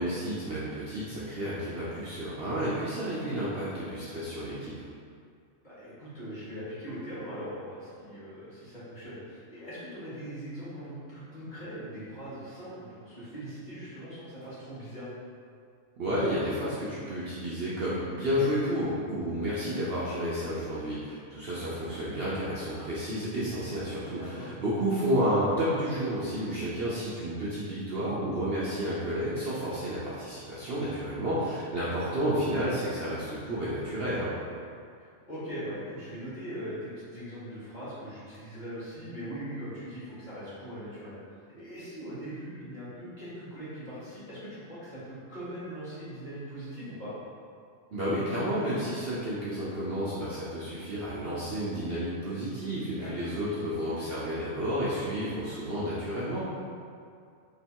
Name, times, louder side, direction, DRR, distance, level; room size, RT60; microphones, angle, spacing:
voice 1, 0.0-4.7 16.0-34.3 47.9-56.4, equal, 55° right, -9 dB, 0.8 m, -31 dB
voice 2, 5.6-15.1 24.1-24.5 30.9-31.4 35.0-41.2 41.5-47.1 52.8-53.6, equal, 35° left, -12 dB, 1.5 m, -41 dB
3.3 x 3.0 x 4.4 m, 2.3 s
omnidirectional pair, 1.5 m